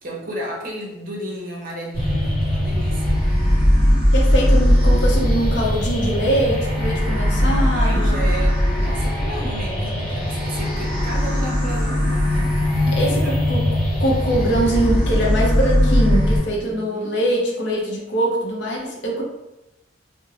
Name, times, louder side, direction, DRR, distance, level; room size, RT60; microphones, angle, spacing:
voice 1, 0.0-3.2 7.3-12.5 12.8-13.3 16.5-17.2, right 1 dB, 45° right, -2 dB, 0.6 m, -33 dB
sound 1, 1.9-16.4, equal, 20° left, 1.2 m, -19 dB
voice 2, 4.1-8.2 13.0-19.2, right 1 dB, 60° left, -2 dB, 0.6 m, -23 dB
2.5 x 2.0 x 3.1 m, 0.93 s
head